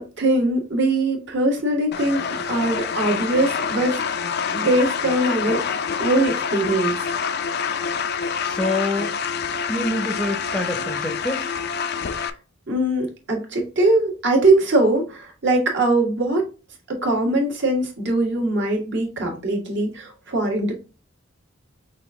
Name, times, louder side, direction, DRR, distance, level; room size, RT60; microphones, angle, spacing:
voice 1, 0.0-4.0 4.5-5.6 6.0-7.1 12.1-12.3 12.7-16.4 16.9-20.7, right 2 dB, 60° right, 1.6 m, -21 dB
sound 1, 1.9-12.3, left 6 dB, 55° left, 0.4 m, -26 dB
voice 2, 8.4-9.1 9.7-11.5, left 2 dB, 5° left, 0.7 m, -26 dB
5.7 x 2.5 x 3.5 m
head